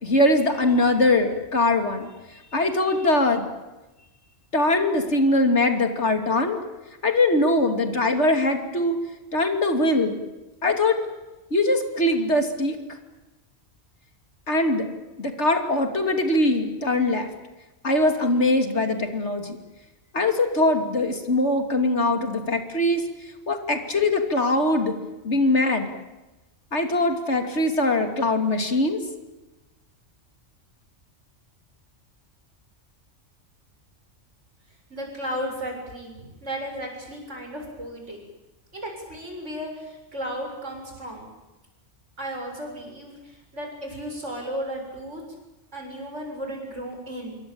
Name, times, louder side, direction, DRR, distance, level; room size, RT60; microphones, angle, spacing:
voice 1, 0.0-2.1 2.5-3.4 4.5-6.6 7.0-9.0 9.3-10.2 10.6-11.0 11.5-12.8 14.5-14.9 15.2-17.3 17.8-19.6 20.1-23.0 23.5-24.9 25.2-25.9 26.7-29.0, left 2 dB, 65° left, 6 dB, 3.2 m, -22 dB
voice 2, 34.9-38.2 38.7-41.3 42.2-45.2 45.7-47.4, equal, 75° right, 2 dB, 7.7 m, -34 dB
27.0 x 23.5 x 8.9 m, 1.1 s
omnidirectional pair, 1.2 m